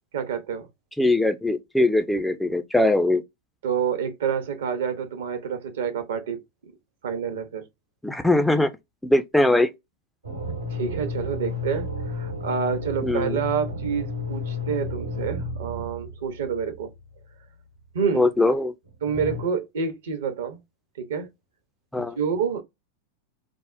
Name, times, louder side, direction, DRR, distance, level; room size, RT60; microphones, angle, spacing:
voice 1, 0.1-0.7 3.6-6.7 7.0-7.6 10.7-16.9 17.9-18.3 19.0-20.6 21.0-21.3 22.0-22.6, right 6 dB, 60° right, 0.7 m, -28 dB
voice 2, 1.0-3.2 8.0-8.7 9.0-9.7 13.0-13.4 18.1-18.7 21.9-22.2, left 2 dB, 5° left, 0.4 m, -21 dB
sound 1, 10.2-16.8 19.0-19.4, left 2 dB, 80° right, 1.0 m, -32 dB
3.4 x 2.0 x 2.4 m
figure-of-eight pair, 90°, 0 cm